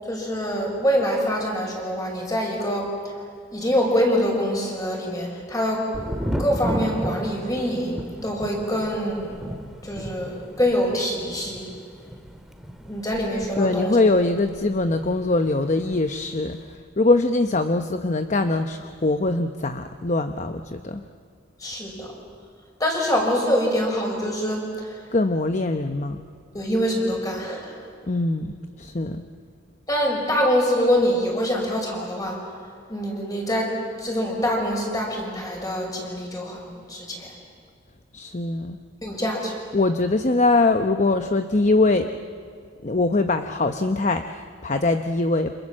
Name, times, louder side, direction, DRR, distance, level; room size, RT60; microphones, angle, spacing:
voice 1, 0.0-2.9 3.5-5.8 6.4-9.4 9.8-11.7 12.8-14.0 21.6-22.1 22.8-25.0 26.5-27.9 29.9-32.4 32.9-33.7 34.0-37.3 39.0-39.5, equal, 20° left, 0 dB, 6.2 m, -25 dB
Thunder, 5.9-15.6 15.8-16.6, equal, ahead, 1.8 m, -34 dB
voice 2, 13.6-16.7 17.0-21.0 25.1-26.2 28.1-29.3 38.1-38.8 39.7-42.2 42.8-45.5, left 2 dB, 40° left, 7 dB, 0.8 m, -22 dB
29.5 x 27.0 x 7.5 m, 2.2 s
head